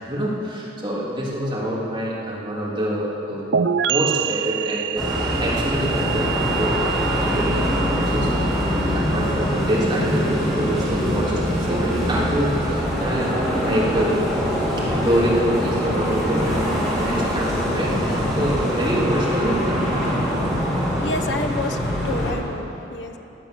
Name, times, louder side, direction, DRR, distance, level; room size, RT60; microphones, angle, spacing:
voice 1, 0.0-14.2 14.9-19.8, right 1 dB, 25° right, -6 dB, 3.0 m, -26 dB
sound 1, 3.5-11.1, right 8 dB, 70° right, 0.4 m, -28 dB
sound 2, 5.0-22.3, equal, ahead, 3.1 m, -23 dB
voice 2, 21.0-21.8 22.0-23.2, left 2 dB, 65° left, 5 dB, 0.9 m, -29 dB
15.5 x 10.5 x 6.9 m, 3.0 s
head